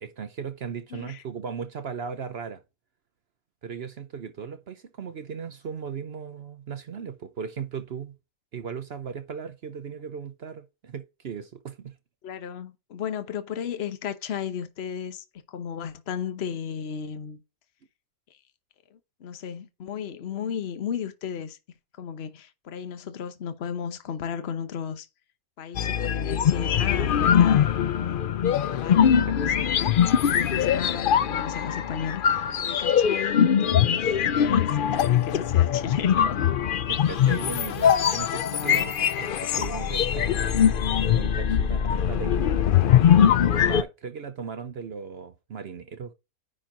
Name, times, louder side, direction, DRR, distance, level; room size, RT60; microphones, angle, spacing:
voice 1, 0.0-2.6 3.6-8.1 8.5-11.9 29.5-29.6 36.9-40.4 41.1-42.5 43.6-46.1, right 6 dB, 50° right, 0.8 m, -37 dB
voice 2, 0.9-1.2 12.2-17.4 18.9-21.6 22.0-25.1 25.6-28.3 28.6-29.7 30.1-36.4, left 8 dB, 50° left, 1.1 m, -34 dB
sound 1, 25.7-43.8, left 9 dB, 90° left, 0.4 m, -22 dB
10.0 x 4.4 x 3.8 m
omnidirectional pair, 1.6 m